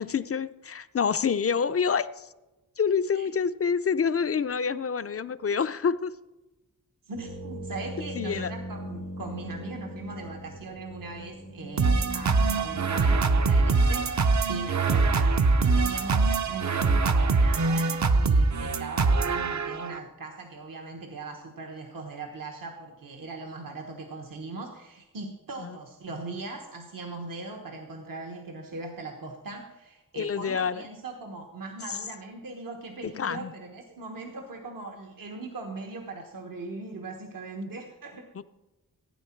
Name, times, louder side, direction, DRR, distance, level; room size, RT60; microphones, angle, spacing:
voice 1, 0.0-2.3 2.8-6.1 8.2-8.5 25.6-25.8 30.2-30.8 31.9-32.0 33.2-33.5 38.3-38.4, left 6 dB, 40° left, 13 dB, 0.5 m, -27 dB
voice 2, 7.0-38.3, right 3 dB, 70° right, 2 dB, 1.3 m, -40 dB
sound 1, 7.1-13.8, right 1 dB, 90° right, 4.4 m, -40 dB
Super-Tech-Man, 11.8-20.0, right 3 dB, 50° right, 0.8 m, -23 dB
16.0 x 9.4 x 4.5 m, 1.0 s
wide cardioid pair, 120°, 35 cm